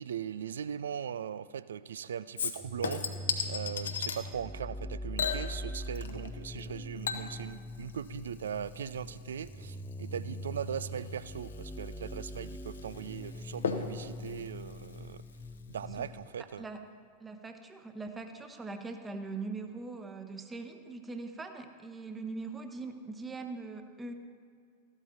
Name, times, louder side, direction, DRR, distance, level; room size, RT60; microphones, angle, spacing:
voice 1, 0.0-3.0 3.5-15.2 15.7-16.7, right 8 dB, 65° right, 16 dB, 0.4 m, -39 dB
Chink clink / Liquid, 2.4-4.2 5.2-6.3 6.6-15.6 16.0-16.1, left 6 dB, 70° left, 0.9 m, -38 dB
sound 1, 2.6-16.3, left 1 dB, ahead, 0.5 m, -42 dB
voice 2, 17.2-24.1, right 3 dB, 15° right, 7 dB, 1.0 m, -41 dB
14.5 x 12.0 x 4.1 m, 2.2 s
figure-of-eight pair, 90°, 0 cm